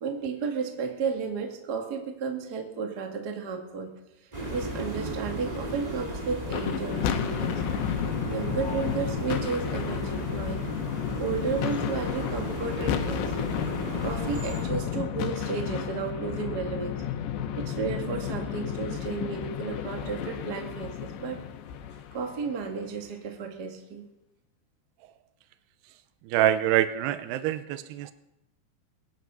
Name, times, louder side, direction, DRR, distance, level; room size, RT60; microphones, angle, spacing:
voice 1, 0.0-3.9 4.5-7.6 8.2-10.7 11.2-13.3 14.0-17.0 17.6-21.4 22.1-24.0, right 5 dB, 65° right, 3 dB, 1.0 m, -33 dB
sound 1, 4.3-14.6, right 1 dB, 20° right, 1.0 m, -35 dB
sound 2, 6.4-22.8, left 9 dB, 75° left, 3.0 m, -32 dB
voice 2, 26.2-28.1, right 12 dB, 85° right, 12 dB, 2.4 m, -25 dB
22.5 x 9.9 x 5.5 m, 0.92 s
omnidirectional pair, 5.5 m